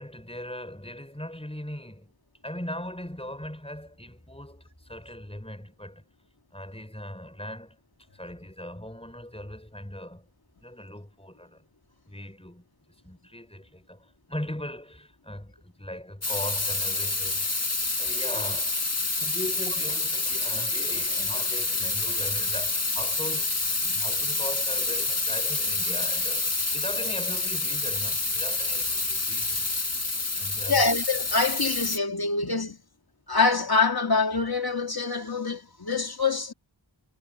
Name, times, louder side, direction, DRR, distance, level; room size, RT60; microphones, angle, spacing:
voice 1, 0.0-2.1 2.4-6.0 6.5-7.8 8.1-10.3 10.6-11.6 12.1-12.6 13.0-18.8 19.2-23.6 23.8-29.7 30.4-30.9, left 1 dB, 10° left, 5.6 m, -39 dB
sound 1, 16.2-32.0, left 3 dB, 35° left, 1.5 m, -28 dB
voice 2, 30.6-32.8 33.3-36.5, left 4 dB, 50° left, 2.6 m, -25 dB
wide cardioid pair, 55°, 47 cm